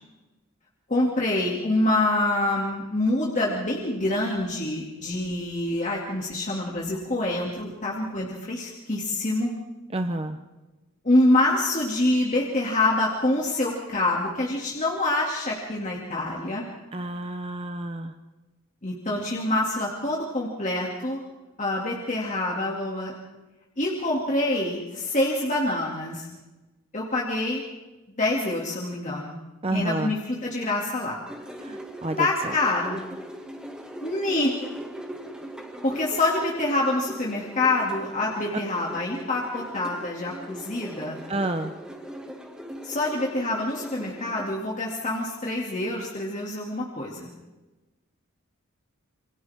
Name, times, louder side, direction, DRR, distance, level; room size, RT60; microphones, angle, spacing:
voice 1, 0.9-9.5 11.0-16.6 18.8-21.2 21.6-23.1 23.8-26.3 26.9-27.6 28.2-29.4 29.7-31.2 32.2-33.0 34.0-34.5 35.8-41.2 42.8-47.3, left 2 dB, 35° left, -3 dB, 2.6 m, -26 dB
voice 2, 9.9-10.4 16.9-18.1 29.6-30.1 31.6-32.5 41.3-41.7, right 2 dB, 25° right, 7 dB, 0.9 m, -29 dB
sound 1, 31.3-44.6, equal, 5° right, 2.1 m, -40 dB
28.0 x 25.5 x 3.7 m, 1.1 s
head